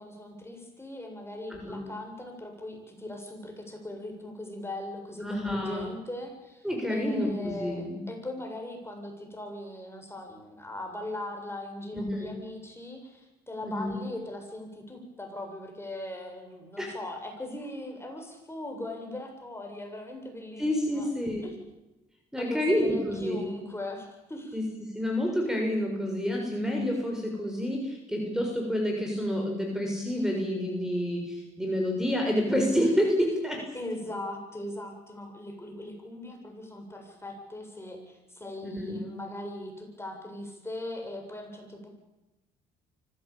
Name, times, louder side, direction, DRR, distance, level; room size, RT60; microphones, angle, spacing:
voice 1, 0.0-21.1 21.4-21.6 22.4-24.6 33.7-41.9, left 1 dB, 15° left, 2 dB, 7.8 m, -39 dB
voice 2, 1.5-1.9 5.2-5.9 6.6-8.0 11.9-12.3 13.6-14.0 16.8-16.9 20.6-21.5 22.3-23.5 24.5-33.6 38.6-39.0, equal, 5° right, 1 dB, 6.7 m, -29 dB
24.5 x 16.5 x 8.9 m, 1.0 s
supercardioid pair, 60°, 19 cm